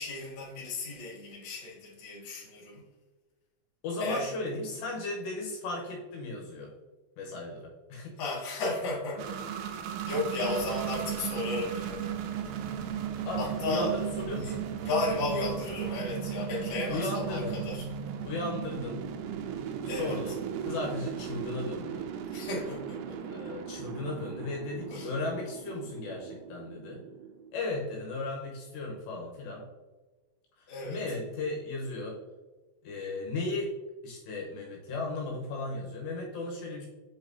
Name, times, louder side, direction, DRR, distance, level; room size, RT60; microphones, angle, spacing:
voice 1, 0.0-2.8 4.0-4.3 8.2-9.3 9.6-9.8 10.0-12.1 13.4-13.9 14.4-14.5 14.8-17.9 19.8-20.3 22.3-23.2 24.9-25.1 30.7-31.0, left 2 dB, 50° left, -6 dB, 1.4 m, -34 dB
voice 2, 3.8-6.7 7.2-8.2 13.3-14.7 16.9-17.6 18.2-19.1 19.9-22.1 23.2-27.0 27.5-29.7 30.6-32.2 32.8-33.8 34.0-36.9, left 2 dB, 75° left, -1 dB, 2.9 m, -36 dB
sound 1, 9.2-27.7, right 9 dB, 85° right, 3.2 m, -37 dB
sound 2, 10.6-15.9, right 5 dB, 70° right, 2.4 m, -45 dB
7.5 x 5.7 x 2.7 m, 1.3 s
omnidirectional pair, 5.7 m